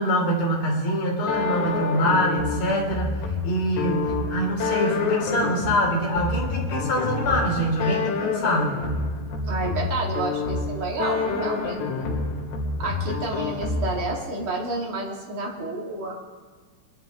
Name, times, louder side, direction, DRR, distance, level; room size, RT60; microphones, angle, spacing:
voice 1, 0.0-3.1 3.4-8.8, equal, 40° left, -2 dB, 4.5 m, -24 dB
sound 1, 1.3-14.2, left 3 dB, 90° left, 4.5 m, -28 dB
voice 2, 9.5-12.2 12.8-16.1, right 3 dB, 35° right, -2 dB, 2.7 m, -30 dB
24.5 x 12.0 x 3.8 m, 1.5 s
omnidirectional pair, 4.9 m